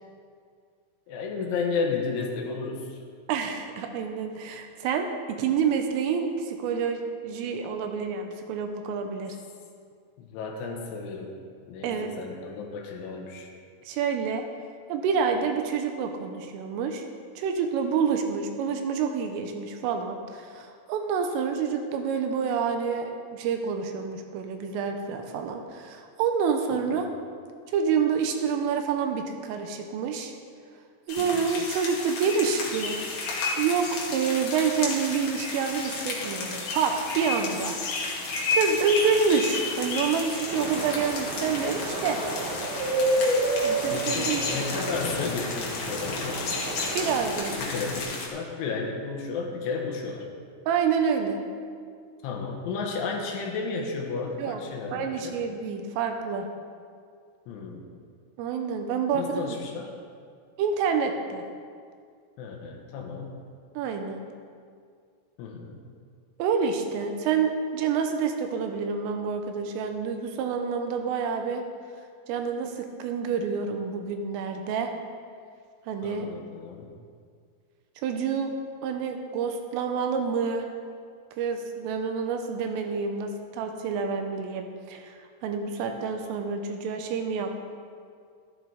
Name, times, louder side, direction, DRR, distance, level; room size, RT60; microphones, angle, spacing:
voice 1, 1.1-3.0 10.2-11.4 11.6-13.5 26.7-27.0 31.2-31.5 43.9-46.6 47.5-50.3 52.2-55.4 57.5-57.9 59.1-59.9 62.4-63.4 65.4-65.8 76.0-76.9, left 4 dB, 75° left, 1 dB, 3.4 m, -33 dB
voice 2, 3.3-9.4 11.8-12.1 13.8-14.4 14.9-17.1 17.4-27.1 27.7-30.4 31.1-33.0 33.6-37.8 38.5-42.2 43.6-44.7 46.9-47.6 50.7-51.4 54.4-54.6 54.9-56.5 58.4-59.4 60.6-61.4 63.8-64.2 66.4-71.6 72.3-74.9 75.9-76.3 78.0-78.5 78.8-80.7 81.4-87.5, right 6 dB, 85° right, 5 dB, 3.4 m, -28 dB
sound 1, 31.1-48.3, left 3 dB, 55° left, 2.7 m, -33 dB
sound 2, 32.4-47.4, left 9 dB, 90° left, 3.4 m, -43 dB
sound 3, 40.5-48.0, right 2 dB, 70° right, 3.5 m, -30 dB
14.0 x 13.0 x 4.0 m, 2.2 s
omnidirectional pair, 6.0 m